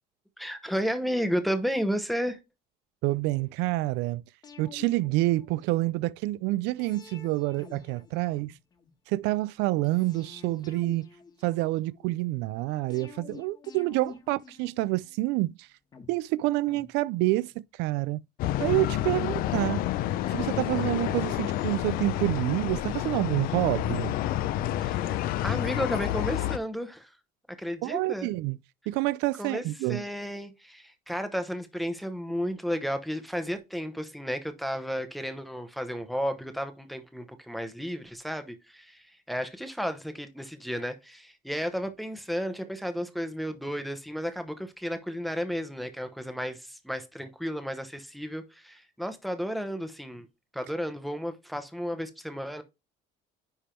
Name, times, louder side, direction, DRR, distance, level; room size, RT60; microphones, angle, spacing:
voice 1, 0.4-2.4 24.8-27.1 27.6-28.3 29.4-50.3 50.5-52.6, equal, ahead, 0.8 m, -33 dB
voice 2, 3.0-4.2 4.6-8.5 9.1-11.1 11.4-15.7 16.1-18.2 18.6-19.8 20.3-24.1 27.8-28.6 28.9-30.0, right 19 dB, 80° right, 0.4 m, -28 dB
sound 1, 4.4-6.0 6.8-8.9 9.8-12.1 12.9-15.3 15.9-17.6 17.9-18.0, left 5 dB, 25° left, 1.3 m, -50 dB
sound 2, 18.4-26.6, left 13 dB, 55° left, 0.5 m, -29 dB
10.0 x 3.4 x 4.4 m
cardioid pair, 180°, 18 cm